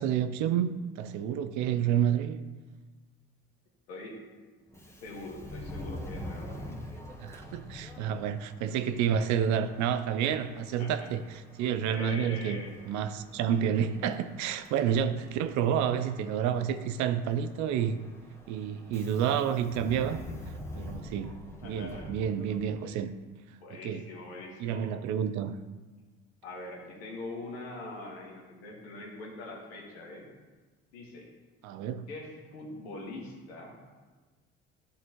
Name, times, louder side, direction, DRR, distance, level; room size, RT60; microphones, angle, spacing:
voice 1, 0.0-2.4 7.2-11.2 11.6-18.0 18.5-20.2 20.8-21.3 21.6-23.1 23.8-24.0 24.6-25.5 31.6-32.0, right 8 dB, 65° right, 0.6 m, -29 dB
voice 2, 3.9-4.2 4.9-6.7 10.8-11.1 11.9-12.8 21.6-22.1 22.8-23.0 23.6-24.9 26.4-30.3 30.9-31.3 32.1-33.8, left 2 dB, 90° left, 1.6 m, -43 dB
Subway metro underground, 4.7-23.0, left 1 dB, 10° left, 1.3 m, -46 dB
11.5 x 4.0 x 3.0 m
hypercardioid pair, 65°, 31 cm